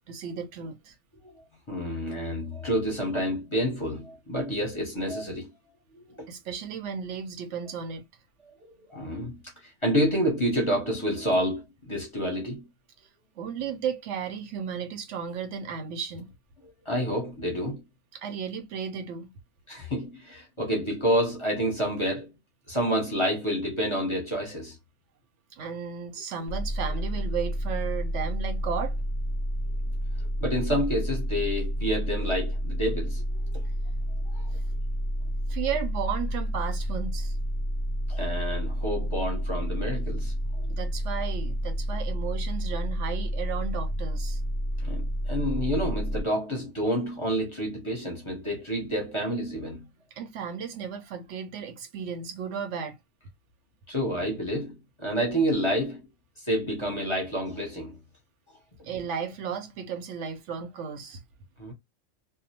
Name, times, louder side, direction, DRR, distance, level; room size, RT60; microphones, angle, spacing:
voice 1, 0.1-0.9 6.3-8.1 13.4-16.3 18.1-19.3 25.6-28.9 35.5-37.3 40.7-44.4 50.2-53.0 58.8-61.2, right 7 dB, 75° right, 0.9 m, -34 dB
voice 2, 1.7-5.5 6.2-6.3 8.9-12.7 16.8-17.8 19.7-22.3 22.7-24.8 30.2-33.6 34.2-34.5 38.1-40.3 44.8-49.8 53.9-56.0 56.4-58.0 61.6-61.7, equal, 30° left, 0.8 m, -29 dB
sound 1, 26.5-46.2, equal, 90° right, 1.1 m, -30 dB
2.4 x 2.0 x 2.7 m
omnidirectional pair, 1.3 m